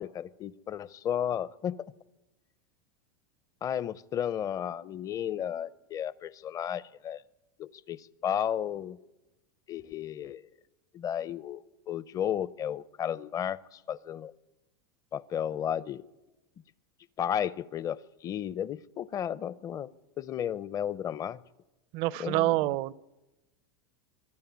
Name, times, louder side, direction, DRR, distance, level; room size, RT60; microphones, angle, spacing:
voice 1, 0.0-1.9 3.6-7.2 7.6-9.0 9.7-10.4 10.9-14.3 15.1-16.1 17.2-19.9 20.2-21.4 22.2-22.6, left 9 dB, 30° left, 19 dB, 0.6 m, -33 dB
voice 2, 21.9-22.9, right 17 dB, 55° right, 21 dB, 0.6 m, -27 dB
23.5 x 12.5 x 9.4 m, 1.0 s
supercardioid pair, 115°, 12 cm